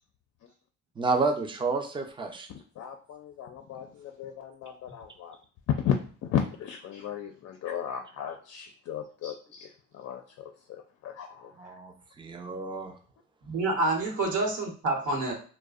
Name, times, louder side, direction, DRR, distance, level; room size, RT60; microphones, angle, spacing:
voice 1, 1.0-2.5 11.6-12.9, right 3 dB, 15° right, 4 dB, 0.4 m, -30 dB
voice 2, 2.8-5.4 5.7-11.5, left 9 dB, 55° left, 4 dB, 0.4 m, -34 dB
voice 3, 13.4-15.3, right 2 dB, 80° right, -1 dB, 0.9 m, -28 dB
2.5 x 2.1 x 2.4 m, 0.42 s
cardioid pair, 90°, 30 cm